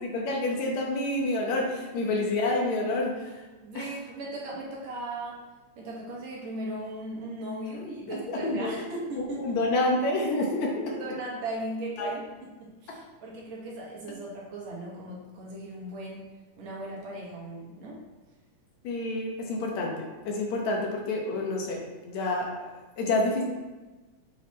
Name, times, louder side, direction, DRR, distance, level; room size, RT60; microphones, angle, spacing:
voice 1, 0.0-3.3 3.8-3.9 8.1-8.7 9.2-10.9 12.0-12.1 18.8-22.5 23.0-23.4, left 2 dB, 70° left, -1 dB, 2.2 m, -28 dB
voice 2, 3.6-5.4 5.8-9.6 10.9-16.3 16.6-18.0, right 1 dB, 65° right, -4 dB, 2.3 m, -37 dB
7.5 x 4.0 x 4.2 m, 1.2 s
omnidirectional pair, 3.5 m